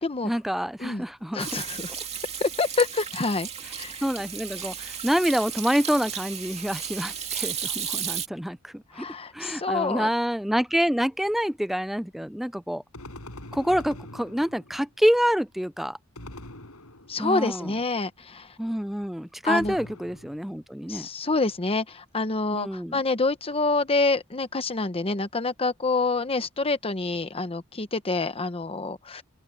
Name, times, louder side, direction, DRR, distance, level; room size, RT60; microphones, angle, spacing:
voice 1, 0.2-1.6 4.0-9.1 9.3-12.8 13.5-16.0 17.2-17.7 18.6-21.1 22.5-23.0, equal, ahead, 0.3 m, -27 dB
voice 2, 1.3-1.9 2.4-3.5 3.8-3.9 8.9-10.1 17.1-18.5 19.4-19.8 20.9-29.2, left 3 dB, 25° left, 0.9 m, -27 dB
Hands / Sink (filling or washing), 1.4-8.3, right 8 dB, 30° right, 2.3 m, -34 dB
sound 1, 12.9-14.9 16.1-17.4 19.6-20.6, left 1 dB, 75° left, 6.9 m, -43 dB
head